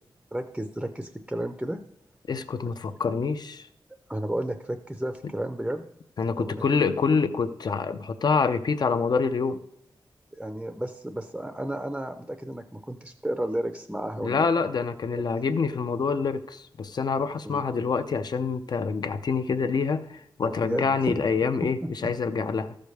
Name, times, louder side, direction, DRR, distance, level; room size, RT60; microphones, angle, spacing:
voice 1, 0.3-1.8 4.1-5.8 6.4-6.6 10.3-14.5 15.1-15.2 17.4-17.6 20.4-21.2 21.8-22.1, right 1 dB, 5° right, 0.5 m, -32 dB
voice 2, 2.3-3.7 5.2-5.3 6.2-9.6 14.2-22.8, left 5 dB, 55° left, 0.6 m, -26 dB
13.5 x 5.1 x 6.4 m
wide cardioid pair, 130°, 8 cm